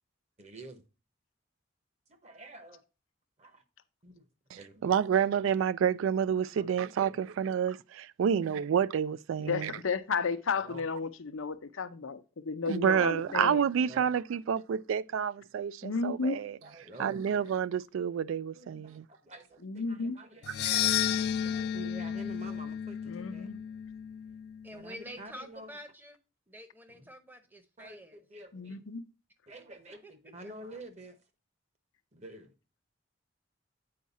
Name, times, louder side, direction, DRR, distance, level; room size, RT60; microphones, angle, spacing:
voice 1, 0.4-0.8 2.1-2.8 3.4-3.6 4.0-4.3 4.6-4.8 6.6-7.3 8.2-8.5 9.4-9.6 10.5-10.8 12.9-14.1 16.3-17.2 18.5-23.5 24.7-25.7 26.9-27.1 27.8-28.8 29.5-31.2 32.1-32.5, right 1 dB, 35° right, 1.0 m, -49 dB
voice 2, 4.8-9.7 12.7-16.6 17.0-19.0 20.5-20.8, right 8 dB, 80° right, 0.3 m, -29 dB
voice 3, 9.5-13.6 15.8-16.4 19.6-20.2 23.1-23.6 28.5-29.0, left 5 dB, 85° left, 0.7 m, -33 dB
sound 1, 20.4-24.8, left 10 dB, 55° left, 0.3 m, -32 dB
voice 4, 24.6-26.2 26.5-28.2 30.0-30.1 30.4-30.5, equal, 10° right, 0.8 m, -47 dB
8.6 x 4.7 x 4.1 m
head